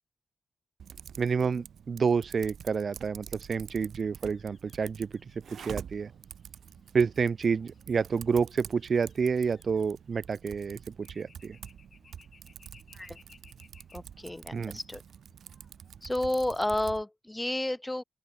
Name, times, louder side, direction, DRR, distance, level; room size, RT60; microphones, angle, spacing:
Typing, 0.8-17.0, right 8 dB, 90° right, 1.4 m, -47 dB
voice 1, 1.2-5.1 5.5-6.1 6.9-11.6 14.5-14.8, right 5 dB, 60° right, 0.4 m, -29 dB
sound 1, 2.5-16.9, left 5 dB, 60° left, 5.6 m, -64 dB
voice 2, 13.9-15.0 16.0-18.0, left 1 dB, 15° left, 1.2 m, -31 dB
open air
cardioid pair, 75°, 0 cm